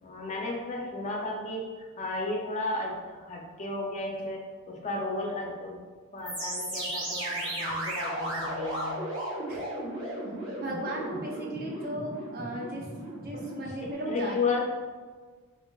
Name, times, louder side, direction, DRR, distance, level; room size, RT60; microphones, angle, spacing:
voice 1, 0.0-5.8 6.1-9.0 13.3-13.5 14.1-14.6, left 3 dB, 30° left, 0 dB, 0.4 m, -33 dB
sound 1, 6.2-13.9, right 1 dB, 20° right, 1.5 m, -35 dB
voice 2, 10.5-12.9 13.2-14.6, right 1 dB, 45° right, -2 dB, 0.6 m, -36 dB
4.9 x 2.4 x 2.3 m, 1.5 s
head